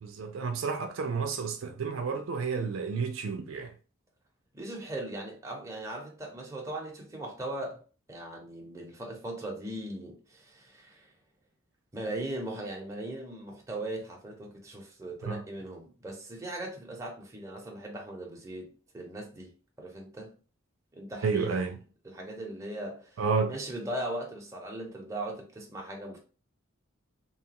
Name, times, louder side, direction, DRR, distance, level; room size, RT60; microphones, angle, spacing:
voice 1, 0.0-3.7 15.3-15.4 21.2-21.8 23.2-23.5, right 5 dB, 70° right, 0.4 m, -31 dB
voice 2, 4.5-7.8 8.1-11.1 11.9-20.4 20.9-21.6 22.0-23.2 23.5-26.2, right 1 dB, 15° right, 0.7 m, -39 dB
2.9 x 2.3 x 2.9 m
head